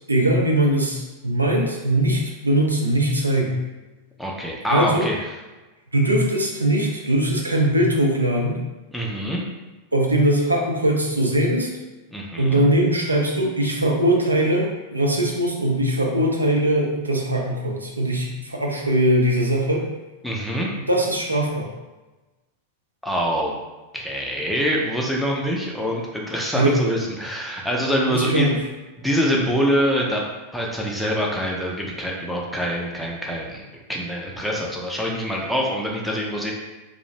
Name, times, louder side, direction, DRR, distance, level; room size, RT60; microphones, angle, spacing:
voice 1, 0.1-3.6 4.7-5.1 5.9-8.6 9.9-11.7 12.4-19.8 20.9-21.7 26.5-26.8 28.1-28.5, right 1 dB, 80° right, 0 dB, 0.4 m, -21 dB
voice 2, 4.2-5.2 8.9-9.4 12.1-12.6 20.2-20.7 23.0-23.5 23.9-28.5 29.0-30.2 30.5-33.6 33.9-36.5, equal, ahead, -2 dB, 0.5 m, -24 dB
2.5 x 2.0 x 2.8 m, 1.2 s
figure-of-eight pair, 90°, 0 cm